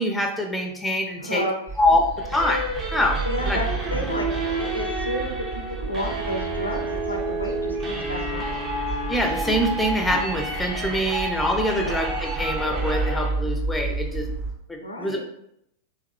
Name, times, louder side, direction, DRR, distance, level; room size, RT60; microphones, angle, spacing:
voice 1, 0.0-1.4 1.8-2.6 2.9-3.2 3.5-3.6 9.1-14.3 14.7-15.2, left 1 dB, 5° left, 2 dB, 0.6 m, -24 dB
voice 2, 1.2-1.6 3.2-8.6 11.7-12.0 14.8-15.2, equal, 80° left, 3 dB, 0.6 m, -31 dB
sound 1, 1.7-14.5, right 3 dB, 40° right, 1.5 m, -32 dB
sound 2, 2.2-13.3, right 1 dB, 25° right, 0.8 m, -30 dB
3.6 x 3.6 x 2.9 m, 0.79 s
figure-of-eight pair, 90°, 0 cm